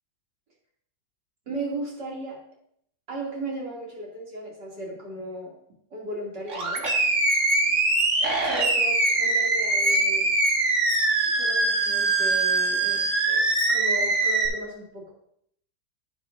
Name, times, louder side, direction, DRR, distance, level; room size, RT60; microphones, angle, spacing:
voice 1, 1.5-2.4 3.1-5.5 5.9-6.9 8.4-10.3 11.4-15.1, right 1 dB, 70° right, -4 dB, 3.2 m, -36 dB
Animal, 6.5-14.5, right 2 dB, 45° right, 1.6 m, -23 dB
9.8 x 9.4 x 2.6 m, 0.70 s
omnidirectional pair, 2.0 m